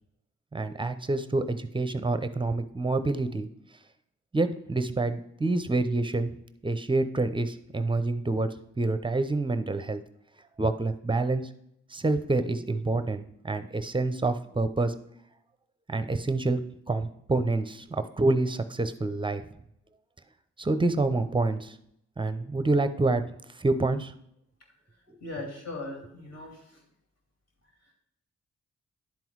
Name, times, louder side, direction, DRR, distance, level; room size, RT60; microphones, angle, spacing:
voice 1, 0.5-3.5 4.3-6.3 6.6-8.5 8.8-10.0 10.6-11.5 11.9-14.9 15.9-16.6 16.9-19.4 20.6-21.8 22.2-23.2 23.5-24.1, right 2 dB, 15° right, 11 dB, 0.7 m, -27 dB
voice 2, 25.2-26.8, left 2 dB, 55° left, 0 dB, 2.5 m, -39 dB
10.5 x 3.9 x 4.6 m, 0.75 s
cardioid pair, 55°, 30 cm